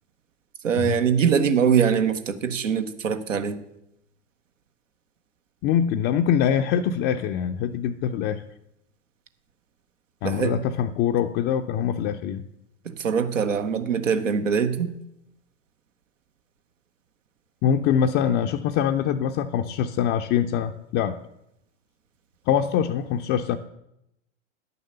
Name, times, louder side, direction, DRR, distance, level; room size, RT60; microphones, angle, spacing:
voice 1, 0.6-3.6 10.2-10.5 12.8-14.9, right 7 dB, 80° right, 9 dB, 1.1 m, -23 dB
voice 2, 5.6-8.4 10.2-12.4 17.6-21.2 22.5-23.6, left 9 dB, 30° left, 4 dB, 0.5 m, -24 dB
10.5 x 6.8 x 6.6 m, 0.83 s
hypercardioid pair, 100°, 37 cm